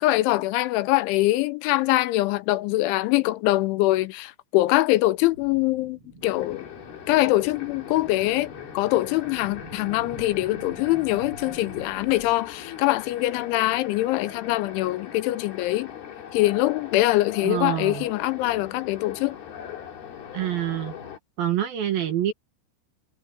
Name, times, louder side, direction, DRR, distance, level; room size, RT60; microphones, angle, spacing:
voice 1, 0.0-6.7 7.1-15.9 16.3-19.4, left 17 dB, 85° left, 3.0 m, -23 dB
sound 1, 5.1-12.3, right 2 dB, 25° right, 7.9 m, -46 dB
sound 2, 6.2-21.2, left 8 dB, 55° left, 4.5 m, -40 dB
voice 2, 17.4-18.1 20.3-20.9 21.4-22.3, right 11 dB, 65° right, 2.7 m, -26 dB
omnidirectional pair, 5.6 m